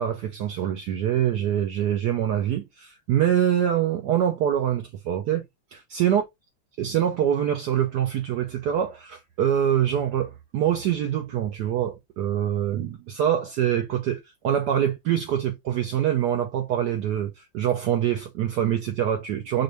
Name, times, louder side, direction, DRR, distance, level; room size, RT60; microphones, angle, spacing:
voice 1, 0.0-5.5 5.7-6.2 6.8-19.6, right 10 dB, 75° right, 0.9 m, -25 dB
4.3 x 2.5 x 3.1 m
omnidirectional pair, 2.3 m